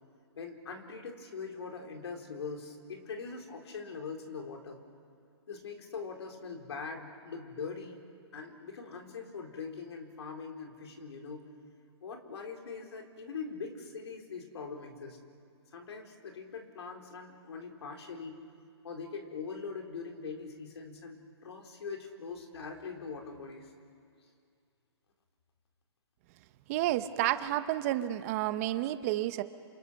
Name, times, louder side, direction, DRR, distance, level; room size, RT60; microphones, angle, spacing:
voice 1, 0.4-4.8 5.5-8.0 8.3-11.5 12.0-15.2 15.7-18.4 18.8-23.7, left 5 dB, 70° left, 2 dB, 4.2 m, -42 dB
voice 2, 26.7-29.4, right 14 dB, 35° right, 12 dB, 0.9 m, -30 dB
29.0 x 27.5 x 6.5 m, 2.3 s
hypercardioid pair, 150°, 14 cm